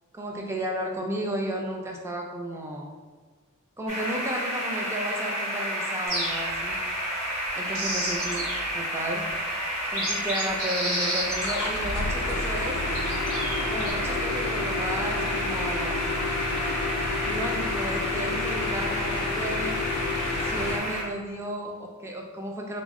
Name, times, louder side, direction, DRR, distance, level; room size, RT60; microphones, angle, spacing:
voice 1, 0.1-2.9 3.8-6.8 7.6-8.5 8.7-9.2 9.9-12.8 13.7-16.1 17.2-19.8 20.4-22.8, right 1 dB, 10° right, 0 dB, 0.3 m, -33 dB
sound 1, 3.9-21.0, equal, 30° right, 0.9 m, -31 dB
sound 2, 6.1-6.7 7.5-8.7 9.3-9.4 9.8-12.2 12.9-13.9, right 1 dB, 75° right, 0.9 m, -32 dB
sound 3, 11.2-20.8, left 4 dB, 85° left, 0.4 m, -30 dB
3.4 x 2.0 x 3.5 m, 1.4 s
head